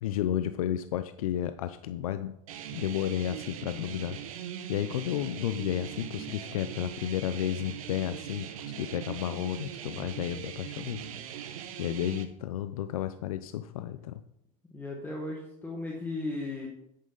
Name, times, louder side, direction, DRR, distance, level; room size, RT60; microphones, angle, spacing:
voice 1, 0.0-2.3 2.7-4.4 4.7-11.0 11.8-14.2, left 11 dB, 85° left, 11 dB, 0.6 m, -32 dB
sound 1, 2.5-12.2, right 9 dB, 85° right, 1.2 m, -41 dB
voice 2, 14.7-16.7, left 2 dB, 10° left, -2 dB, 1.6 m, -36 dB
9.9 x 9.2 x 4.0 m, 0.77 s
supercardioid pair, 130°, 18 cm